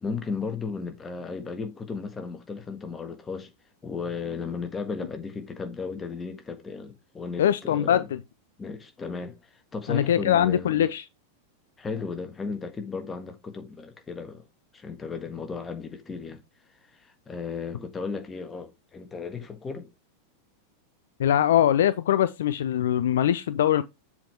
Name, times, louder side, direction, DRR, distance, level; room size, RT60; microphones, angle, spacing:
voice 1, 0.0-3.5 3.8-8.1 8.6-10.9 11.8-14.4 14.7-16.4 16.9-19.9, left 5 dB, 15° left, 1.4 m, -35 dB
voice 2, 7.4-8.2 9.9-11.0 21.2-23.8, left 10 dB, 60° left, 0.4 m, -22 dB
7.4 x 4.6 x 3.4 m
figure-of-eight pair, 90°, 0 cm